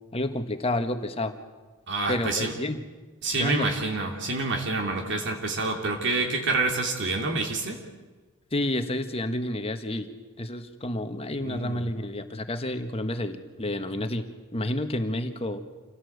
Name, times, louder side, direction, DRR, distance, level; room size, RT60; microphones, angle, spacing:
voice 1, 0.1-1.3 2.1-2.8 3.4-3.7 8.5-10.1 10.4-14.3 14.5-15.6, left 1 dB, 25° left, 8 dB, 1.5 m, -30 dB
voice 2, 1.9-2.5 3.2-7.8 11.4-11.8, right 3 dB, 55° right, 2 dB, 2.9 m, -27 dB
27.5 x 17.0 x 8.0 m, 1.3 s
head